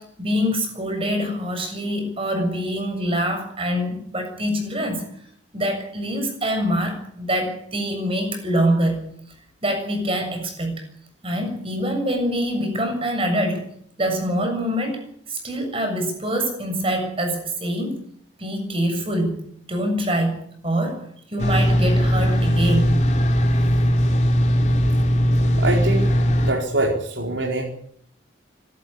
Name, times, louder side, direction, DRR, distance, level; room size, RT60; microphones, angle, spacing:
voice 1, 0.0-5.0 5.5-9.1 9.6-10.8 11.2-13.7 14.0-15.0 15.3-18.0 18.4-19.4 19.7-23.1, equal, 30° right, 5 dB, 7.1 m, -25 dB
sound 1, 21.4-26.5, equal, 35° left, 3.2 m, -19 dB
voice 2, 25.6-26.1 26.4-27.6, right 2 dB, 70° right, 0 dB, 4.4 m, -23 dB
26.0 x 13.0 x 9.9 m, 0.64 s
head